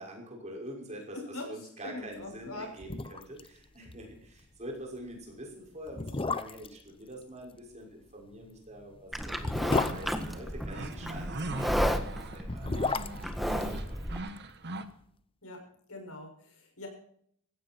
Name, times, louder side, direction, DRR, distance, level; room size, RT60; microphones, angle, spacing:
voice 1, 0.0-13.0 13.4-14.0, right 1 dB, 30° right, 0 dB, 6.0 m, -45 dB
voice 2, 1.1-2.7 15.4-15.6 15.9-16.9, left 2 dB, 70° left, 2 dB, 6.8 m, -42 dB
sound 1, 2.4-2.5 2.8-3.5 3.7-3.8 4.2-4.4 5.1-5.2 5.9-6.8 8.3-11.0 12.3-14.5 14.8-14.9, left 3 dB, 25° left, 0.7 m, -33 dB
Livestock farm animals working animals, 9.1-14.2, equal, ahead, 1.6 m, -33 dB
sound 2, 9.3-14.9, right 2 dB, 50° right, 1.5 m, -41 dB
18.5 x 15.5 x 4.6 m, 0.64 s
head